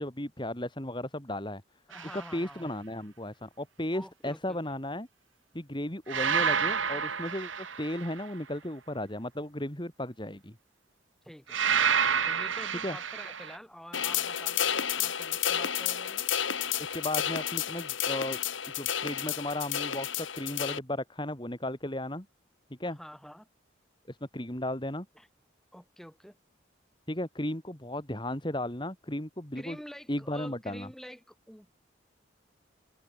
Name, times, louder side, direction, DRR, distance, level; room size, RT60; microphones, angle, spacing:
voice 1, 0.0-1.6 2.1-5.1 5.5-7.5 7.8-10.5 12.8-13.0 16.8-18.4 18.8-22.2 22.8-23.0 24.1-25.0 27.1-29.8 30.1-30.9, left 1 dB, 25° left, 3.1 m, -35 dB
voice 2, 1.9-2.6 3.9-4.8 11.2-16.3 22.8-23.5 25.1-25.3 25.7-26.4 29.5-31.7, equal, ahead, 7.8 m, -48 dB
sound 1, 1.9-2.3 6.1-8.3 11.5-13.6, right 7 dB, 85° right, 2.5 m, -29 dB
sound 2, 13.9-20.8, left 9 dB, 80° left, 2.2 m, -31 dB
open air
head